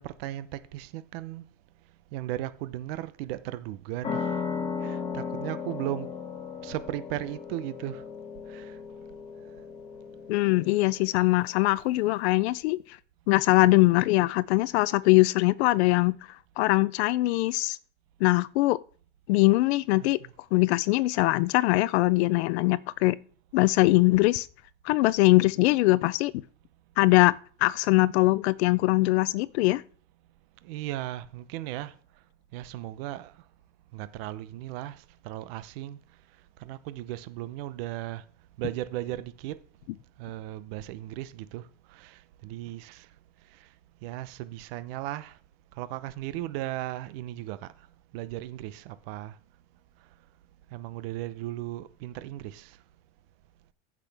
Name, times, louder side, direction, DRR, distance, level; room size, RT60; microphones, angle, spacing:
voice 1, 0.0-1.5 2.1-4.3 4.8-6.1 6.6-8.1 8.5-8.8 19.9-20.3 30.6-32.0 32.5-33.4 33.9-36.0 36.6-38.2 38.6-39.6 40.2-43.1 43.4-43.7 44.0-45.4 45.7-47.9 48.1-49.4 50.7-52.8, right 15 dB, 55° right, 0.7 m, -36 dB
sound 1, 4.0-11.2, left 5 dB, 15° left, 1.6 m, -36 dB
voice 2, 10.3-13.0 13.3-16.2 16.6-17.8 18.2-18.8 19.3-20.2 20.5-23.2 23.5-24.5 24.8-26.3 27.0-27.3 27.6-29.8, left 20 dB, 65° left, 0.5 m, -22 dB
14.5 x 6.1 x 3.4 m
supercardioid pair, 175°, 36 cm